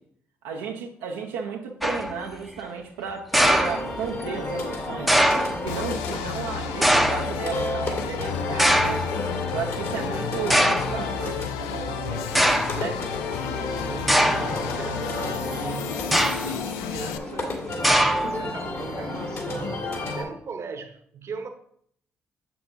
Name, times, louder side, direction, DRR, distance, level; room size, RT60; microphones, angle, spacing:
voice 1, 0.4-5.4 5.6-9.1 9.5-12.4 12.7-13.0, right 6 dB, 80° right, 0.6 m, -34 dB
sound 1, 1.8-2.2 3.3-4.2 5.1-5.6 6.8-7.4 8.6-9.1 9.9-10.0 10.5-11.0 11.8-11.9 12.4-12.8 14.1-14.6 16.0-16.6 17.8-18.5, equal, ahead, 0.6 m, -21 dB
sound 2, 3.3-20.2, left 2 dB, 55° left, 2.0 m, -32 dB
sound 3, 5.7-17.2, left 9 dB, 80° left, 0.3 m, -33 dB
voice 2, 13.7-16.1 16.3-21.5, right 5 dB, 50° right, 0.9 m, -39 dB
6.8 x 5.9 x 2.6 m
hypercardioid pair, 45°, 6 cm